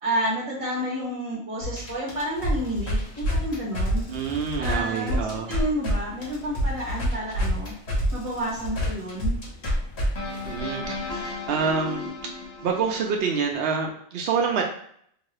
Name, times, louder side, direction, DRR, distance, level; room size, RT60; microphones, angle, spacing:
voice 1, 0.0-4.0 4.6-7.7 8.1-9.4, right 1 dB, 35° right, -4 dB, 1.2 m, -30 dB
sound 1, 1.6-5.9 6.2-13.4, equal, 80° left, 1.3 m, -29 dB
sound 2, 2.3-11.3, left 1 dB, 50° left, 1.1 m, -47 dB
voice 2, 4.1-5.5 10.4-12.3 12.6-14.6, right 5 dB, 70° right, 1 dB, 0.8 m, -27 dB
2.9 x 2.7 x 3.1 m, 0.63 s
omnidirectional pair, 1.1 m